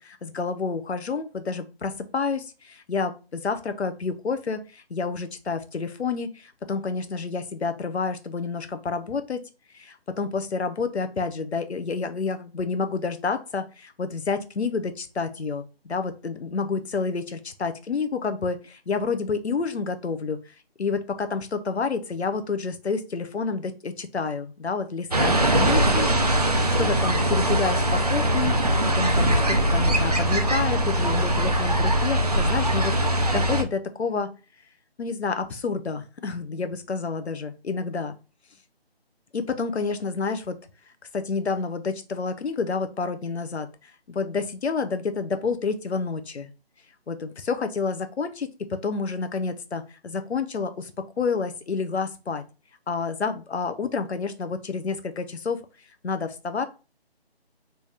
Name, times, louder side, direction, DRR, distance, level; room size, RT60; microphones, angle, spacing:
voice 1, 0.0-9.4 9.7-20.4 20.8-26.5 26.8-34.3 35.0-38.1 39.3-40.6 41.1-43.7 44.1-46.5 47.1-50.9 51.2-52.4 52.9-55.6 56.0-56.6, left 4 dB, 85° left, 9 dB, 0.7 m, -29 dB
sound 1, 25.1-33.6, right 1 dB, 40° right, 0.4 m, -22 dB
3.4 x 2.7 x 3.3 m, 0.31 s
figure-of-eight pair, 165°, 32 cm